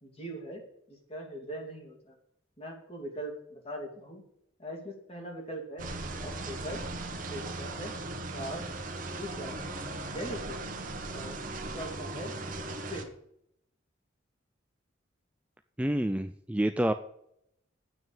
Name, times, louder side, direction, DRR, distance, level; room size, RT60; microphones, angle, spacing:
voice 1, 0.0-0.6 0.9-2.2 2.6-4.2 4.6-5.9 6.2-6.8 7.2-7.9 8.3-8.6 9.1-9.7 10.0-10.6 11.1-11.4 11.7-12.3 12.7-13.1, equal, 30° left, 0 dB, 2.7 m, -41 dB
sound 1, 5.8-13.0, right 2 dB, 40° right, 1.4 m, -38 dB
voice 2, 15.8-16.9, right 1 dB, 5° right, 9 dB, 0.3 m, -28 dB
9.0 x 6.3 x 8.5 m, 0.73 s
head